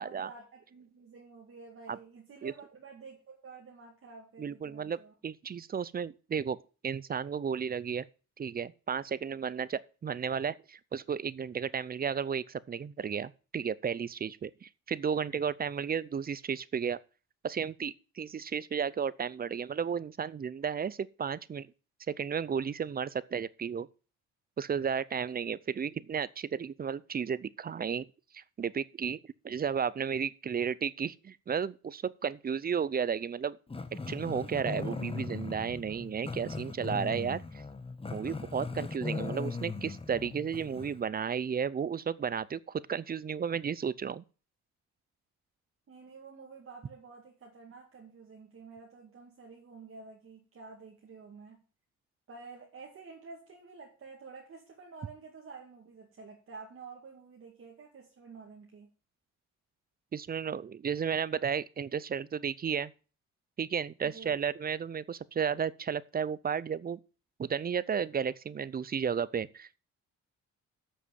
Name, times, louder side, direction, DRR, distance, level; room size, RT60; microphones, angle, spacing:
voice 1, 0.0-5.1 25.3-25.4 45.9-51.6 52.3-58.9 64.0-64.4, right 4 dB, 45° right, 2.3 m, -50 dB
voice 2, 4.4-6.6 6.8-8.1 8.4-17.0 17.4-21.7 22.1-23.9 24.6-28.1 28.3-33.6 33.9-37.4 38.1-44.2 60.1-62.9 63.6-67.0 67.4-69.8, right 7 dB, 30° right, 0.5 m, -33 dB
Growling, 33.7-41.0, left 4 dB, 20° left, 1.2 m, -39 dB
7.6 x 6.6 x 7.5 m
cardioid pair, 90°, 30 cm